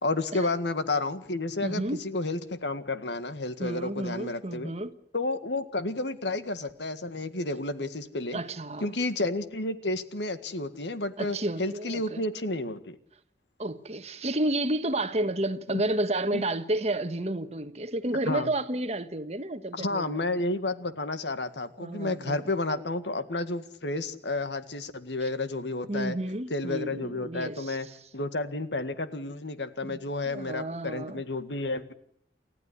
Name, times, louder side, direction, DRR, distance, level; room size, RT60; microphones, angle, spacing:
voice 1, 0.0-4.7 5.1-8.4 8.8-12.9 16.3-16.4 18.2-18.5 19.7-26.2 26.5-27.9 28.1-31.9, left 2 dB, 80° left, 1.9 m, -31 dB
voice 2, 1.6-2.0 3.6-4.9 8.3-8.9 11.2-12.2 13.6-20.2 21.8-22.5 25.9-28.0 29.8-30.0 30.3-31.2, right 1 dB, 35° right, 1.4 m, -31 dB
29.5 x 14.5 x 10.0 m
head